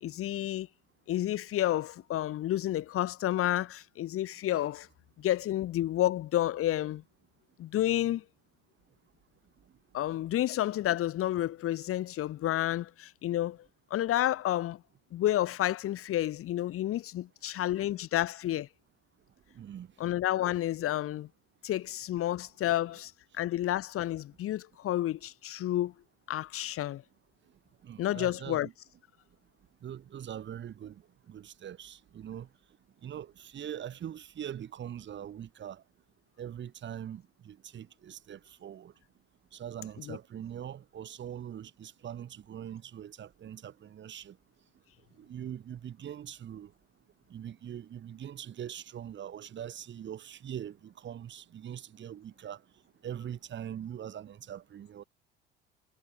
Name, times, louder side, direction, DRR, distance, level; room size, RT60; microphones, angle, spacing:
voice 1, 0.0-0.7 1.1-4.9 5.2-7.0 7.6-8.2 9.9-13.6 13.9-14.8 15.1-18.7 20.0-21.3 21.6-23.1 23.4-25.9 26.3-27.0 28.0-28.7 40.0-40.2, left 13 dB, 45° left, 2.0 m, -30 dB
voice 2, 19.6-19.9 27.8-28.7 29.8-31.0 31.3-32.5 33.0-35.8 36.4-38.9 39.5-44.3 45.2-46.7 47.3-52.6 53.0-55.0, right 10 dB, 40° right, 1.8 m, -42 dB
figure-of-eight pair, 60°, 30 cm